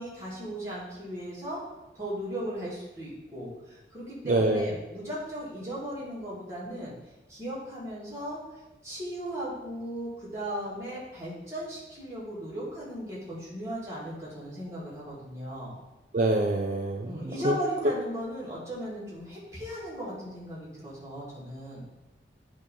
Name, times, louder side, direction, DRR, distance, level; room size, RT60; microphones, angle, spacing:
voice 1, 0.0-1.6 1.9-6.9 7.3-8.4 8.8-15.7 17.0-21.9, equal, 15° right, -8 dB, 2.1 m, -37 dB
voice 2, 4.3-4.7 16.1-17.6, right 2 dB, 45° right, 1 dB, 0.4 m, -26 dB
8.3 x 3.0 x 5.2 m, 1.0 s
head